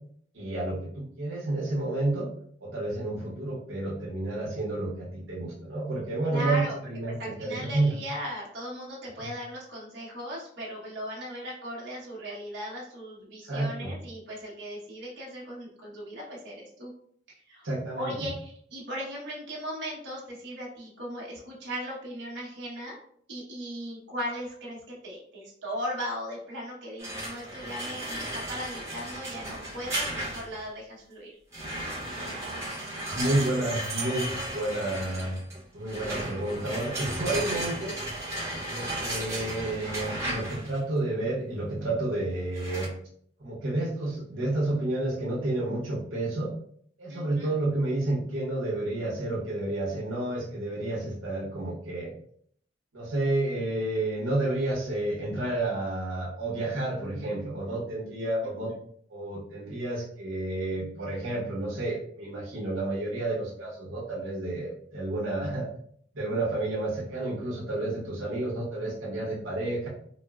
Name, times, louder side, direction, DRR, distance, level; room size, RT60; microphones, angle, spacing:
voice 1, 0.3-2.3 2.6-7.9 9.2-9.3 13.4-13.9 17.6-18.1 33.0-35.4 35.7-38.0 38.6-42.9 43.4-46.5 47.0-52.1 52.9-58.7 59.1-65.7 66.1-69.9, right 2 dB, 85° right, -5 dB, 0.9 m, -30 dB
voice 2, 6.3-6.7 7.2-16.9 17.3-17.7 18.0-23.0 23.3-31.4 47.1-47.5 58.4-58.5, equal, 65° right, -5 dB, 1.0 m, -38 dB
sound 1, 27.0-30.7 31.5-40.8 42.6-42.9, right 1 dB, 15° right, 0.8 m, -35 dB
4.2 x 2.0 x 2.3 m, 0.62 s
head